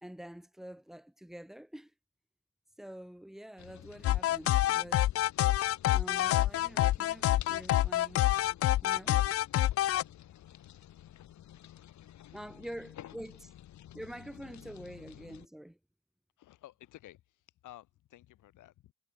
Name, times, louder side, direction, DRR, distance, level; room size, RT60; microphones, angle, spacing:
voice 1, 0.0-1.9 2.8-5.1 5.9-8.3 8.8-9.3 12.3-13.5 13.9-15.8, equal, ahead, 1.4 m, -46 dB
sound 1, 3.6-15.5, left 12 dB, 70° left, 1.8 m, -52 dB
sound 2, 4.0-10.0, left 14 dB, 50° left, 0.4 m, -27 dB
voice 2, 10.1-10.5 10.8-11.1 11.6-12.4 16.4-18.9, left 14 dB, 85° left, 6.9 m, -56 dB
cardioid pair, 90°, 30 cm